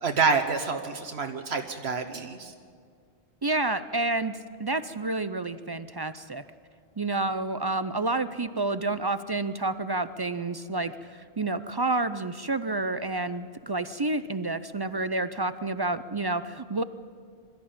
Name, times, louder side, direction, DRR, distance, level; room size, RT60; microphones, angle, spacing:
voice 1, 0.0-2.5, right 5 dB, 75° right, 6 dB, 1.3 m, -27 dB
voice 2, 3.4-6.4 7.0-16.8, right 2 dB, 35° right, 12 dB, 0.4 m, -29 dB
22.5 x 13.5 x 8.7 m, 2.1 s
omnidirectional pair, 1.1 m